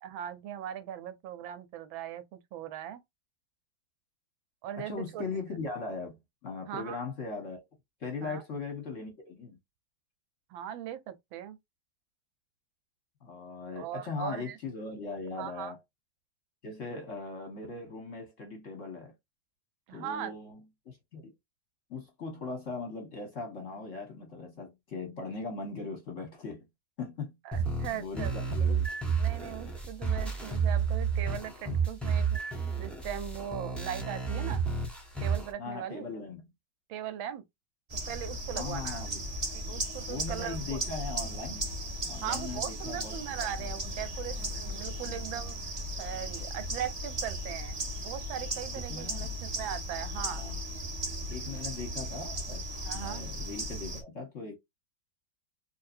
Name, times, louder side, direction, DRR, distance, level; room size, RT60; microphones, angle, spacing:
voice 1, 0.0-3.0 4.6-5.3 6.7-7.0 8.2-8.4 10.5-11.6 13.8-14.6 15.3-15.7 19.9-20.3 27.4-28.3 29.2-32.4 32.8-34.6 35.2-36.1 36.9-37.4 38.1-39.0 39.5-40.8 42.2-50.5 52.8-53.2, right 10 dB, 80° right, 1.4 m, -39 dB
voice 2, 4.7-7.6 8.0-9.6 13.2-15.8 16.6-19.1 19.9-21.3 21.9-26.6 27.0-27.4 27.9-28.9 35.6-36.4 38.5-39.2 40.1-41.7 42.0-43.2 43.6-43.7 45.0-45.2 48.9-49.4 50.3-50.6 51.3-54.6, left 4 dB, 50° left, 1.0 m, -39 dB
sound 1, 27.5-35.5, right 6 dB, ahead, 0.4 m, -31 dB
sound 2, 37.9-54.0, right 1 dB, 25° right, 1.0 m, -36 dB
4.5 x 2.7 x 2.5 m
omnidirectional pair, 2.2 m